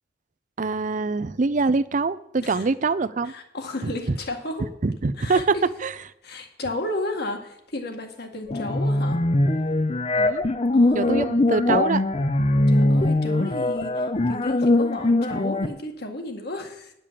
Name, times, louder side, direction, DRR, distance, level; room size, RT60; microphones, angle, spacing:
voice 1, 0.6-3.3 3.8-3.9 4.8-5.4 5.8-5.9 10.2-10.5 10.9-12.0, right 4 dB, 40° right, 15 dB, 0.5 m, -24 dB
voice 2, 3.2-4.7 5.2-5.7 6.2-9.2 10.7-11.1 12.7-16.9, left 1 dB, 55° left, 4 dB, 1.9 m, -33 dB
sound 1, 8.5-15.7, left 2 dB, 35° left, 0.6 m, -21 dB
10.0 x 6.8 x 7.5 m, 0.78 s
head